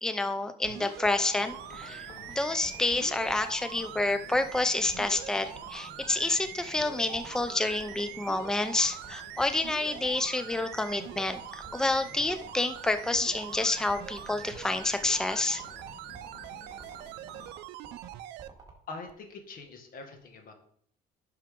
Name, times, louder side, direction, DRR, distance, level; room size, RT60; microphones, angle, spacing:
voice 1, 0.0-15.6, left 2 dB, 5° left, 10 dB, 0.5 m, -29 dB
sound 1, 0.6-18.5 19.1-19.2, right 14 dB, 85° right, 0.5 m, -44 dB
sound 2, 1.0-18.7, right 4 dB, 20° right, 2.4 m, -50 dB
sound 3, 1.3-17.5, left 4 dB, 80° left, 1.8 m, -52 dB
voice 2, 18.9-20.5, left 3 dB, 60° left, 4 dB, 1.9 m, -43 dB
10.5 x 6.0 x 3.7 m, 0.65 s
cardioid pair, 110°, 17 cm